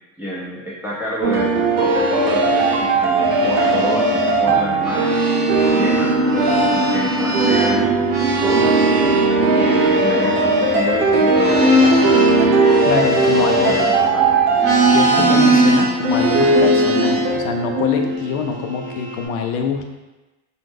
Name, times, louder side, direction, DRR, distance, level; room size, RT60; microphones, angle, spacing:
voice 1, 0.2-6.2 6.7-8.0 8.4-9.1 9.6-14.3, equal, 5° right, -6 dB, 0.4 m, -29 dB
sound 1, 1.2-18.2, right 3 dB, 80° right, 0.8 m, -18 dB
sound 2, 1.6-4.4 4.7-14.2 14.5-17.3 18.0-19.2, right 1 dB, 40° right, 0.8 m, -22 dB
Piano, 5.7-11.9, equal, 20° left, 0.8 m, -28 dB
voice 2, 12.9-13.8 14.9-19.9, left 6 dB, 60° left, 4 dB, 0.5 m, -24 dB
2.9 x 2.1 x 3.4 m, 1.1 s
supercardioid pair, 100°, 50 cm